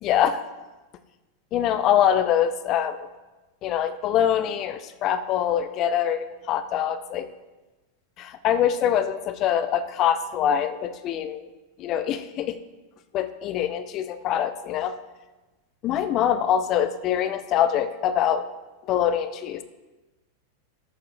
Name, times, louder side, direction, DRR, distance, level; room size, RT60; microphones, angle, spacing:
voice 1, 0.0-0.4 1.5-3.1 3.6-7.3 8.2-11.5 11.8-12.6 13.1-14.9 15.8-18.5 18.9-19.6, left 9 dB, 35° left, 11 dB, 0.5 m, -24 dB
13.5 x 6.8 x 2.6 m, 1.1 s
figure-of-eight pair, 90°, 0 cm